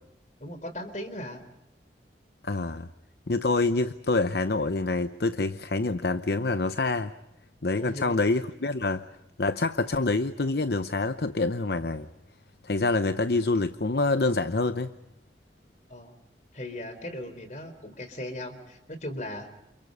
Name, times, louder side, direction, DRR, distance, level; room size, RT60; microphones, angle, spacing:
voice 1, 0.4-1.4 7.8-8.2 15.9-16.2 16.5-19.5, left 1 dB, 40° left, 9 dB, 3.9 m, -38 dB
voice 2, 2.4-2.9 3.3-7.1 7.6-9.0 9.4-12.1 12.6-14.9, left 3 dB, 65° left, 11 dB, 0.8 m, -26 dB
29.0 x 29.0 x 5.4 m, 0.89 s
head